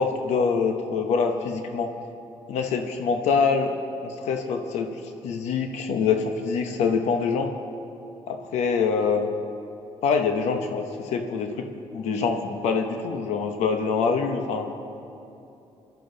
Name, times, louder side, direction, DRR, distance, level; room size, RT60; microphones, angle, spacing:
voice 1, 0.0-2.0 2.5-3.8 4.0-7.5 8.3-9.3 10.0-14.7, left 5 dB, 85° left, 6 dB, 0.9 m, -25 dB
20.5 x 12.5 x 3.9 m, 2.8 s
cardioid pair, 100°, 11 cm